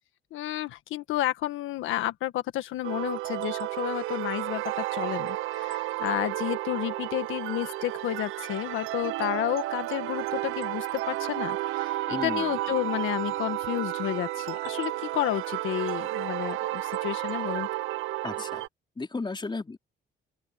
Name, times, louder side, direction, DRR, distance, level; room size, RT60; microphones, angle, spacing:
voice 1, 0.3-17.7, left 14 dB, 90° left, 1.6 m, -31 dB
sound 1, 2.8-18.7, right 16 dB, 90° right, 0.8 m, -32 dB
voice 2, 12.1-12.6 18.2-18.6 19.0-19.8, left 3 dB, 25° left, 4.8 m, -34 dB
open air
cardioid pair, 90°, 20 cm